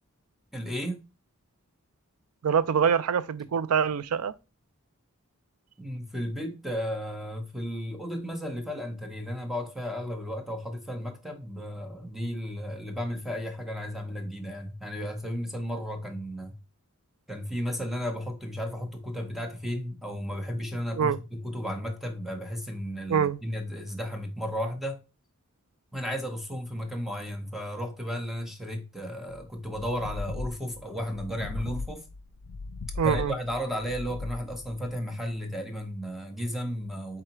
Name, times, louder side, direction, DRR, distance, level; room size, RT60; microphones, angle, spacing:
voice 1, 0.5-1.0 5.8-16.6 17.3-25.0 25.9-32.0 33.0-37.2, equal, ahead, 0.8 m, -34 dB
voice 2, 2.4-4.3 21.0-21.2 23.1-23.4 33.0-33.3, right 7 dB, 80° right, 0.4 m, -25 dB
sound 1, 29.3-35.4, left 3 dB, 70° left, 0.4 m, -39 dB
4.7 x 3.8 x 2.9 m
head